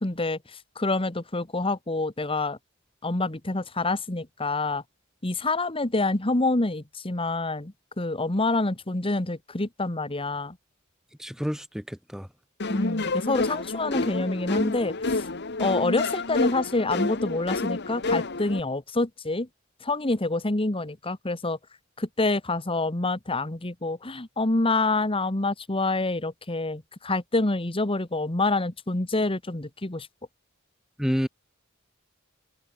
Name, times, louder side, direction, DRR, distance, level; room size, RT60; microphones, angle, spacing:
voice 1, 0.0-2.6 3.0-4.8 5.2-10.6 12.7-15.3 15.6-19.5 19.8-21.6 22.0-30.1, left 2 dB, 25° left, 1.5 m, -27 dB
voice 2, 11.2-12.3 31.0-31.3, equal, 5° right, 1.6 m, -29 dB
sound 1, 12.6-18.6, left 3 dB, 55° left, 1.6 m, -29 dB
head